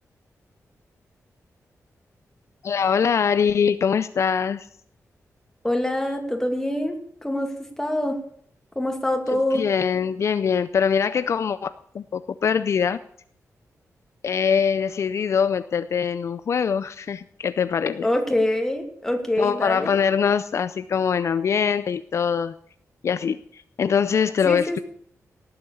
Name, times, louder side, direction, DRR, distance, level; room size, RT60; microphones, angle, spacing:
voice 1, 2.6-4.7 9.3-11.7 11.9-13.0 14.2-18.1 19.4-22.6 23.0-24.8, left 7 dB, 55° left, 13 dB, 0.5 m, -23 dB
voice 2, 5.6-7.5 7.8-8.2 8.8-9.6 18.0-19.9 24.4-24.8, left 1 dB, 10° left, 3 dB, 2.4 m, -25 dB
18.0 x 7.9 x 7.1 m, 0.62 s
wide cardioid pair, 140°, 6 cm